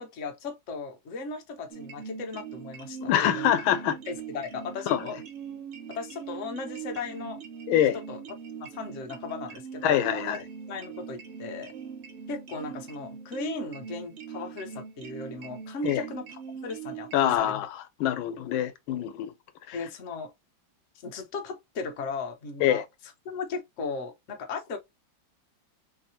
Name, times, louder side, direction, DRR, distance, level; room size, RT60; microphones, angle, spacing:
voice 1, 0.0-3.6 4.1-5.2 5.9-7.4 7.9-8.2 8.6-10.4 10.7-11.7 12.3-17.5 19.7-20.3 21.0-22.8 23.2-24.8, left 4 dB, 50° left, 1.0 m, -37 dB
sound 1, 1.7-17.4, right 8 dB, 70° right, 0.6 m, -41 dB
voice 2, 3.0-4.0 4.9-5.0 7.7-8.0 9.8-10.4 15.8-16.0 17.1-17.7 18.0-19.3 22.6-22.8, left 11 dB, 85° left, 1.5 m, -25 dB
4.6 x 2.7 x 2.8 m
omnidirectional pair, 2.1 m